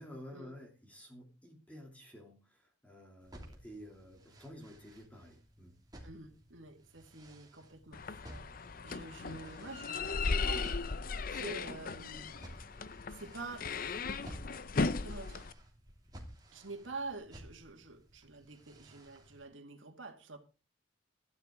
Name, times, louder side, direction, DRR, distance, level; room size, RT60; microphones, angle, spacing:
voice 1, 0.0-5.7, equal, 5° left, 3.0 m, -51 dB
sound 1, 3.2-19.5, right 1 dB, 20° right, 2.9 m, -55 dB
voice 2, 6.0-10.8 11.3-12.4 13.1-13.7 15.0-15.5 16.5-20.4, right 3 dB, 80° right, 2.1 m, -47 dB
sound 2, 7.9-15.5, left 4 dB, 45° left, 0.6 m, -37 dB
13.0 x 11.5 x 3.8 m
head